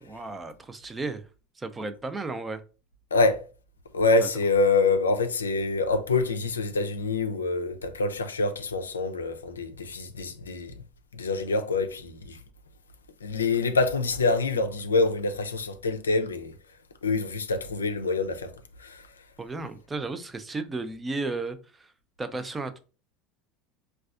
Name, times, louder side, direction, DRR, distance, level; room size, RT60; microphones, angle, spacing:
voice 1, 0.0-1.3 1.6-2.6 4.2-4.3 19.4-21.9 22.2-22.8, right 3 dB, 20° right, 0.5 m, -34 dB
voice 2, 3.1-3.4 3.9-10.7 11.2-12.4 13.2-16.5 17.0-18.5 18.8-19.0, left 3 dB, 90° left, 0.4 m, -26 dB
4.0 x 2.3 x 2.4 m
hypercardioid pair, 75°, 0 cm